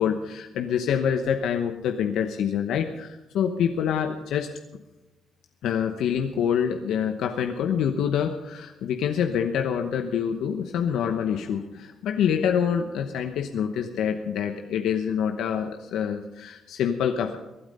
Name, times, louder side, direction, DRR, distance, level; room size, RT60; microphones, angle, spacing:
voice 1, 0.0-4.5 5.6-17.4, left 8 dB, 80° left, 5 dB, 0.9 m, -26 dB
23.5 x 8.9 x 5.5 m, 1.1 s
cardioid pair, 90°, 0 cm